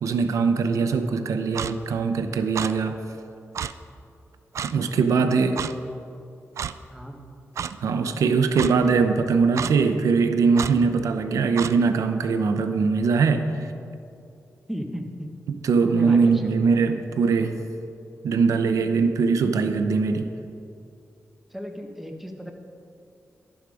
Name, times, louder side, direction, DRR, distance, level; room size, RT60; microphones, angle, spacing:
voice 1, 0.0-3.0 4.6-5.6 7.8-13.7 15.5-17.5 18.2-20.3, right 5 dB, 85° right, 8 dB, 0.7 m, -21 dB
Clock, 1.6-1.7 2.6-2.7 3.6-3.7 4.6-4.7 5.6-5.7 6.6-6.7 7.6-7.7 8.6-8.7 9.6-9.7 10.6-10.7 11.6-11.7, right 8 dB, 65° right, 0.4 m, -29 dB
voice 2, 14.7-15.3 15.9-16.3 21.5-22.5, equal, 5° right, 3 dB, 1.3 m, -34 dB
11.5 x 10.5 x 4.9 m, 2.6 s
cardioid pair, 95°, 5 cm